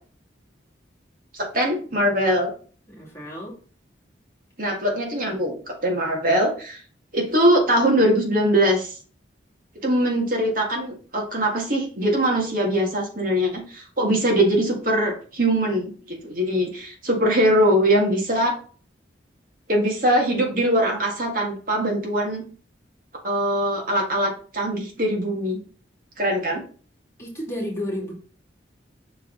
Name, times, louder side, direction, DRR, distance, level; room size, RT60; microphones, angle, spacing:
voice 1, 1.3-2.5 4.6-6.8 7.1-9.0 9.8-18.6 19.7-22.4 23.2-25.6 26.2-26.6, equal, 45° right, 0 dB, 1.9 m, -22 dB
voice 2, 2.9-3.5 27.2-28.1, left 1 dB, 15° left, -5 dB, 2.3 m, -31 dB
6.0 x 4.6 x 3.9 m, 0.41 s
head